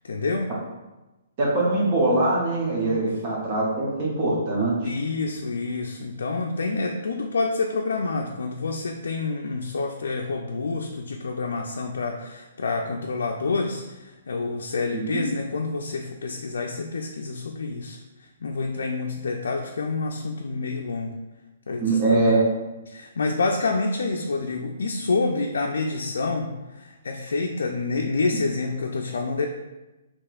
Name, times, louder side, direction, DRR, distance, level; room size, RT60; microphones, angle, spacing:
voice 1, 0.0-0.5 4.8-21.1 21.7-22.5 22.9-29.5, left 3 dB, 85° left, 1 dB, 0.3 m, -28 dB
voice 2, 1.4-4.7 14.9-15.2 21.8-22.5, right 2 dB, 35° right, -5 dB, 0.7 m, -22 dB
4.2 x 2.9 x 2.4 m, 1.1 s
hypercardioid pair, 160°, 0 cm